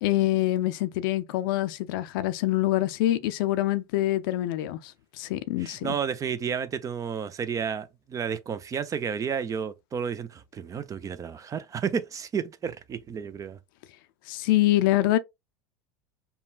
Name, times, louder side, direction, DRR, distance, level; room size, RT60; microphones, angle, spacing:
voice 1, 0.0-5.9 14.3-15.2, left 15 dB, 65° left, 0.5 m, -25 dB
voice 2, 5.6-13.6, right 7 dB, 25° right, 0.5 m, -31 dB
5.4 x 2.2 x 2.4 m
hypercardioid pair, 90°, 12 cm